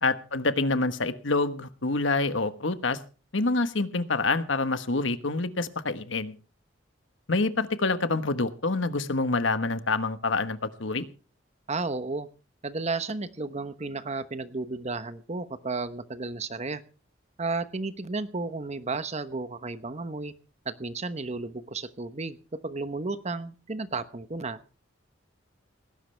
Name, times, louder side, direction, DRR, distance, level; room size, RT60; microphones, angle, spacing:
voice 1, 0.0-3.0 3.3-6.3 7.3-11.1, left 3 dB, 80° left, 11 dB, 1.3 m, -27 dB
voice 2, 11.7-12.3 12.6-16.8 17.4-20.3 20.6-22.4 22.6-24.6, right 3 dB, 35° right, 12 dB, 1.0 m, -33 dB
18.5 x 16.0 x 3.4 m, 0.36 s
head